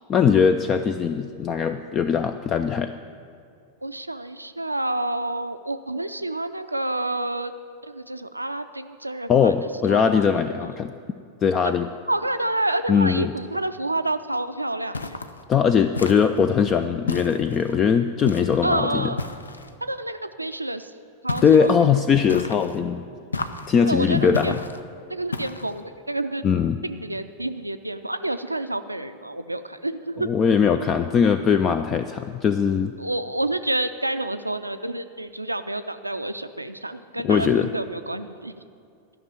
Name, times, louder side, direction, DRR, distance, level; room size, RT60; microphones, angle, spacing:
voice 1, 0.1-2.9 9.3-10.9 11.4-11.9 12.9-13.3 15.5-19.1 21.4-23.0 23.7-24.6 26.4-26.8 30.2-32.9 37.2-37.7, left 7 dB, 25° left, 10 dB, 0.4 m, -20 dB
voice 2, 3.8-7.5 7.8-9.5 9.9-10.7 11.6-11.7 12.1-15.2 18.6-19.2 19.8-20.9 21.2-21.7 23.8-24.6 25.1-26.4 26.8-30.3 33.0-38.5, right 2 dB, 85° right, 10 dB, 0.4 m, -28 dB
sound 1, 14.9-15.4 15.9-16.5 17.1-17.7 18.2-18.6 19.2-19.7 21.3-21.8 22.3-22.8 23.3-23.8 24.3-24.8 25.3-25.8, left 3 dB, 75° left, 0.5 m, -32 dB
12.5 x 6.0 x 9.0 m, 2.4 s
figure-of-eight pair, 90°, 0 cm